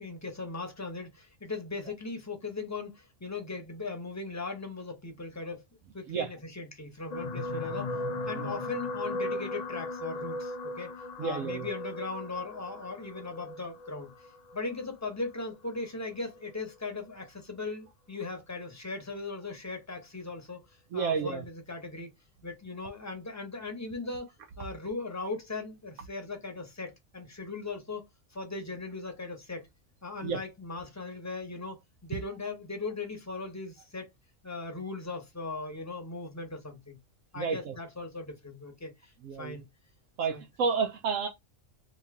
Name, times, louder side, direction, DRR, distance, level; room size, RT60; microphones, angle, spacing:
voice 1, 0.0-5.6 5.9-7.9 8.3-10.9 11.2-14.1 14.5-20.6 20.9-22.1 22.4-24.3 24.6-28.0 28.3-29.7 30.0-34.1 34.4-37.0 37.3-39.1 39.4-39.7 40.3-40.4, left 3 dB, 15° left, 0.7 m, -38 dB
sound 1, 7.1-15.6 16.3-16.6 16.8-16.9, left 2 dB, 85° left, 0.3 m, -37 dB
voice 2, 11.2-11.7 20.9-21.4 30.2-30.4 37.4-37.8 39.2-39.6 40.2-41.3, right 5 dB, 85° right, 1.0 m, -30 dB
3.0 x 2.7 x 3.5 m
omnidirectional pair, 1.3 m